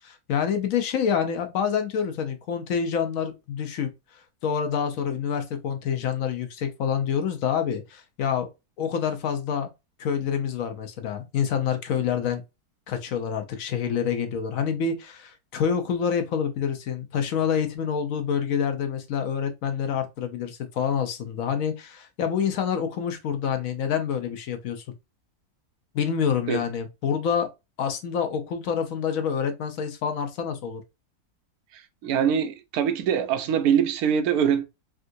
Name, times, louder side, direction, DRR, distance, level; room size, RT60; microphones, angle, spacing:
voice 1, 0.0-8.5 8.8-9.7 10.0-12.4 12.9-24.8 25.9-27.5 27.8-30.8, left 7 dB, 70° left, 0.9 m, -27 dB
voice 2, 31.7-34.6, right 8 dB, 75° right, 1.0 m, -23 dB
3.5 x 2.5 x 2.6 m
omnidirectional pair, 1.6 m